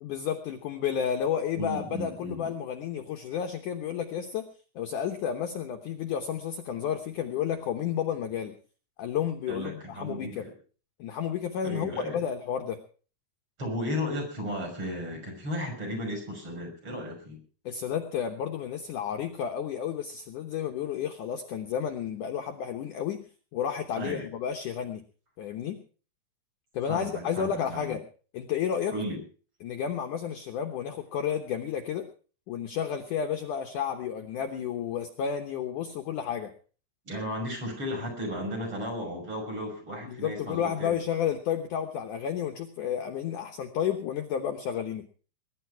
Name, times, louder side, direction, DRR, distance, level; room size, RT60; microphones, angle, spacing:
voice 1, 0.0-4.5 4.8-8.6 9.0-10.5 11.0-12.8 17.7-23.3 23.5-25.0 25.4-25.8 26.7-28.0 28.3-28.9 29.6-32.1 32.5-36.5 40.0-45.1, left 8 dB, 65° left, 6 dB, 2.1 m, -31 dB
voice 2, 1.6-2.5 9.5-10.5 11.6-12.2 13.6-17.4 24.0-24.3 26.9-27.9 28.9-29.2 37.1-41.0, equal, 30° right, 3 dB, 6.2 m, -34 dB
21.0 x 11.0 x 4.6 m, 0.39 s
omnidirectional pair, 4.8 m